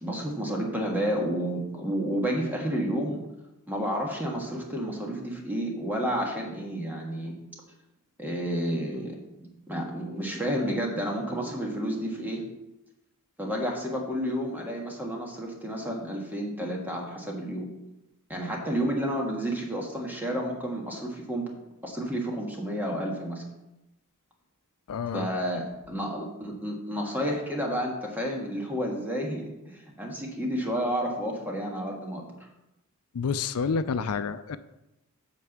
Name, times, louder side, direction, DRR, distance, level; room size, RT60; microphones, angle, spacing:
voice 1, 0.0-3.2 3.7-7.3 8.2-12.5 13.4-17.7 18.3-21.5 21.8-23.4 25.1-32.3, equal, 10° right, 0 dB, 1.6 m, -31 dB
voice 2, 24.9-25.3 33.1-34.6, left 5 dB, 80° left, 12 dB, 0.5 m, -29 dB
8.3 x 4.5 x 7.2 m, 0.93 s
head